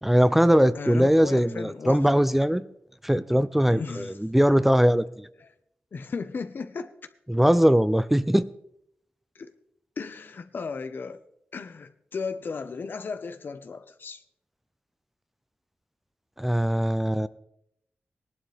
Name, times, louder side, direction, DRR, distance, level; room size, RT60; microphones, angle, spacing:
voice 1, 0.0-2.7 3.0-5.3 7.3-8.5 16.4-17.3, equal, 5° right, 0.6 m, -21 dB
voice 2, 0.7-2.1 3.7-4.2 5.4-5.5 5.9-6.9 9.3-9.5 10.0-11.2 11.5-14.2, left 5 dB, 60° left, 1.1 m, -35 dB
18.5 x 11.5 x 3.5 m
cardioid pair, 55°, 4 cm